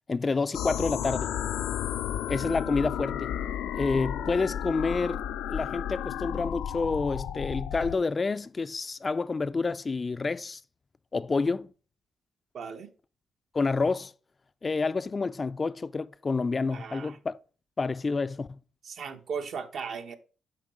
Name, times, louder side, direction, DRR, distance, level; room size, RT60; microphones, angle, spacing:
voice 1, 0.1-1.3 2.3-3.3 3.7-5.2 5.5-10.6 11.1-11.7 13.5-14.1 14.6-17.3 17.8-18.6, left 4 dB, 30° left, 0.3 m, -28 dB
sound 1, 0.5-8.0, left 10 dB, 85° left, 0.5 m, -33 dB
voice 2, 12.5-12.9 16.7-17.2 18.8-20.1, right 6 dB, 60° right, 1.0 m, -37 dB
7.2 x 4.5 x 4.8 m
cardioid pair, 90°, 0 cm